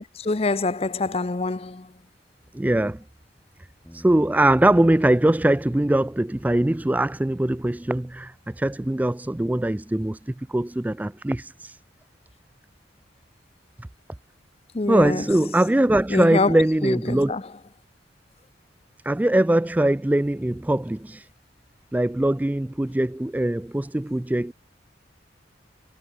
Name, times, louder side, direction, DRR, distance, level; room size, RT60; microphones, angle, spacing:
voice 1, 0.0-1.9 14.7-15.2 16.1-16.6 16.8-17.4, left 3 dB, 30° left, 0.6 m, -25 dB
voice 2, 2.5-3.0 4.0-11.5 14.9-17.3 19.1-21.2 21.9-24.5, right 1 dB, 10° right, 0.3 m, -22 dB
sound 1, 3.8-10.1, equal, 5° left, 3.2 m, -51 dB
head